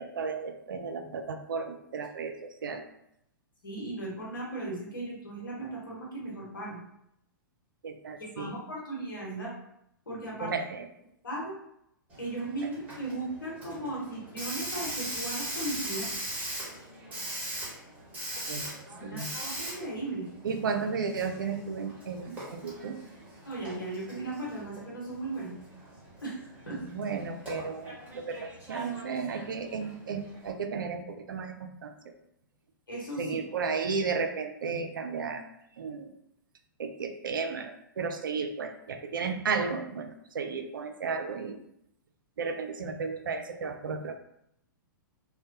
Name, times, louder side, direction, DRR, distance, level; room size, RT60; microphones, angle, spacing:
voice 1, 0.0-2.8 7.8-8.6 10.4-10.9 18.5-18.7 19.0-19.3 20.4-23.0 26.7-31.9 33.2-35.4 35.8-36.1 36.8-41.6 42.4-44.2, right 5 dB, 70° right, 6 dB, 0.4 m, -34 dB
voice 2, 3.6-6.8 8.2-9.6 10.1-10.5 11.2-11.5 12.2-16.1 19.0-20.3 23.4-25.5 26.2-26.8 32.9-33.4, right 2 dB, 75° left, -4 dB, 1.0 m, -37 dB
Hiss, 12.1-30.5, right 1 dB, 15° right, 1.0 m, -41 dB
2.2 x 2.1 x 2.7 m, 0.75 s
figure-of-eight pair, 110°, 11 cm